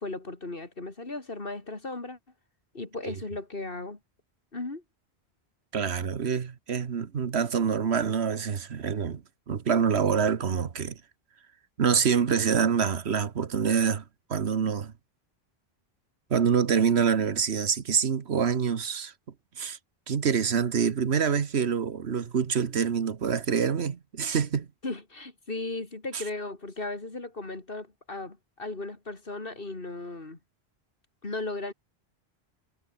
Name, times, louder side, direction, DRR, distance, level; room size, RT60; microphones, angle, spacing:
voice 1, 0.0-2.2 2.7-4.0 4.5-4.8 24.8-30.4 31.2-31.7, left 2 dB, 60° left, 3.0 m, -36 dB
voice 2, 5.7-11.0 11.8-14.0 14.3-14.9 16.3-19.1 19.6-19.8 20.1-24.7 26.1-26.2, right 6 dB, 85° right, 1.5 m, -26 dB
omnidirectional pair, 1.1 m